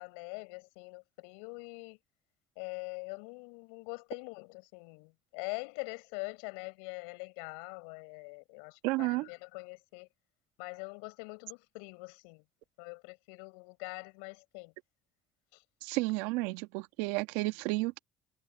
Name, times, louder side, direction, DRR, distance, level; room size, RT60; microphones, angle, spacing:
voice 1, 0.0-2.0 2.6-10.1 10.6-12.4 12.8-14.7 15.5-15.6, left 37 dB, 85° left, 6.3 m, -44 dB
voice 2, 8.8-9.3 15.8-18.0, right 22 dB, 80° right, 1.4 m, -32 dB
hypercardioid pair, 60°, 4 cm